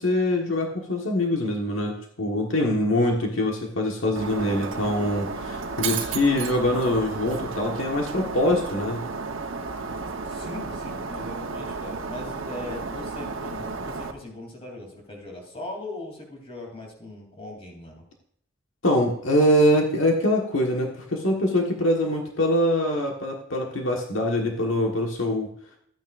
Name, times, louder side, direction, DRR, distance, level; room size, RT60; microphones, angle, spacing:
voice 1, 0.0-9.0 18.8-25.5, left 1 dB, 75° left, 0 dB, 1.5 m, -24 dB
Shatter, 4.2-14.1, right 4 dB, 70° right, 1.0 m, -32 dB
voice 2, 10.2-18.0, left 2 dB, 30° left, 0 dB, 3.2 m, -39 dB
13.5 x 9.4 x 2.6 m, 0.69 s
head